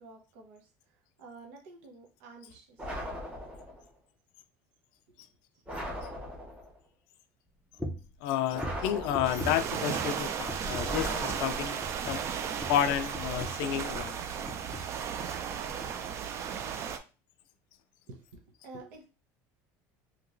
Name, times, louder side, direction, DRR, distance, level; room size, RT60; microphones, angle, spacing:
voice 1, 0.0-2.9 5.1-5.2 18.1-19.0, right 3 dB, 80° right, 0.8 m, -50 dB
sound 1, 2.8-3.9 5.7-6.8 8.5-9.7 10.8-12.0, equal, 20° right, 1.1 m, -39 dB
sound 2, 7.8-8.2 8.6-10.2 10.5-11.0 11.3-11.5 11.8-14.2 14.5-15.0 15.3-15.5 15.8-15.9, equal, 5° left, 0.6 m, -41 dB
voice 2, 8.2-11.8 12.1-14.2, left 10 dB, 70° left, 0.3 m, -31 dB
sound 3, 9.2-17.0, right 7 dB, 40° right, 0.4 m, -35 dB
3.0 x 2.9 x 2.5 m
cardioid pair, 135°, 8 cm